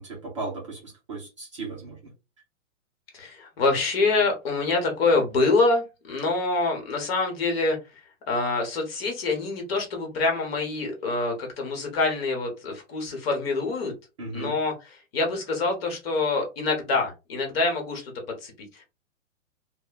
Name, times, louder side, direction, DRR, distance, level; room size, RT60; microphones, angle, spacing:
voice 1, 0.0-2.1 14.2-14.6, right 3 dB, 25° right, -3 dB, 0.5 m, -36 dB
voice 2, 3.1-7.8 8.3-13.9 14.3-14.7 15.1-18.1 18.4-18.8, left 3 dB, 45° left, 2 dB, 1.0 m, -25 dB
3.0 x 2.1 x 2.2 m, 0.28 s
hypercardioid pair, 160°, 41 cm